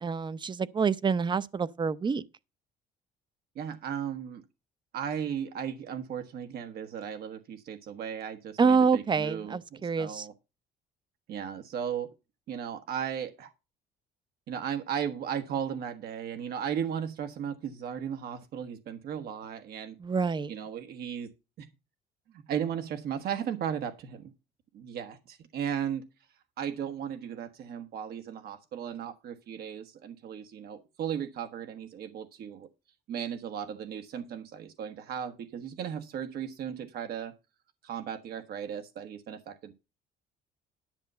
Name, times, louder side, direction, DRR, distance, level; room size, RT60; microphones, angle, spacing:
voice 1, 0.0-2.2 8.6-10.3 20.0-20.5, right 5 dB, 25° right, 0.7 m, -27 dB
voice 2, 3.5-4.4 4.9-10.3 11.3-12.1 12.5-13.5 14.5-20.0 20.5-21.3 21.6-21.7 22.3-24.3 24.7-26.1 26.6-32.7 33.1-37.3 37.8-39.7, right 8 dB, 65° right, 1.4 m, -36 dB
10.5 x 5.2 x 6.8 m
cardioid pair, 110°, 17 cm